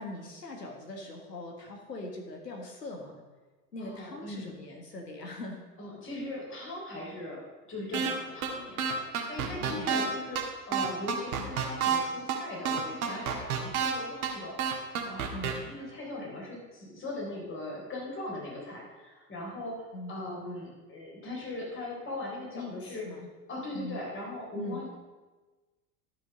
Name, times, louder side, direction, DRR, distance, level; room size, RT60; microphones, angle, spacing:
voice 1, 0.0-3.2 3.7-5.6 9.6-10.0 15.3-15.6 19.9-20.2 22.5-23.3 23.7-24.0 24.5-24.8, left 2 dB, 85° left, 2 dB, 1.8 m, -41 dB
voice 2, 3.8-4.6 5.8-7.4 7.7-14.6 15.0-23.1 23.5-24.9, left 2 dB, 25° left, -2 dB, 3.8 m, -39 dB
sound 1, 7.9-8.1 8.4-8.5 8.8-10.1 10.4-10.5 10.7-12.0 12.3-12.4 12.7-13.9 14.2-14.3 14.6-15.5, right 8 dB, 60° right, 1.7 m, -28 dB
12.0 x 5.7 x 5.3 m, 1.2 s
figure-of-eight pair, 85°, 48 cm